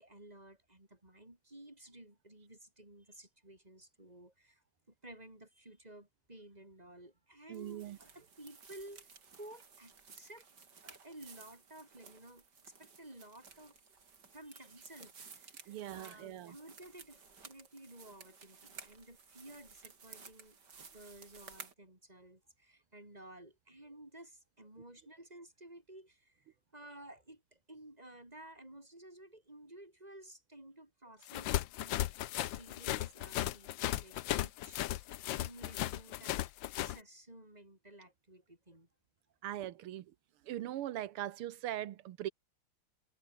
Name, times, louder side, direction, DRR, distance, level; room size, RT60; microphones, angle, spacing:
voice 1, 0.0-10.5 10.8-13.8 14.3-26.5 26.7-32.0 32.3-34.9 35.4-36.4 36.6-38.9, right 1 dB, 15° right, 6.4 m, -54 dB
sound 1, 7.5-21.7, right 5 dB, 50° right, 3.1 m, -56 dB
voice 2, 7.5-8.0 15.7-16.5 39.4-40.1 40.5-42.3, right 13 dB, 85° right, 1.9 m, -40 dB
sound 2, 31.3-37.0, left 14 dB, 70° left, 1.3 m, -36 dB
omnidirectional pair, 2.3 m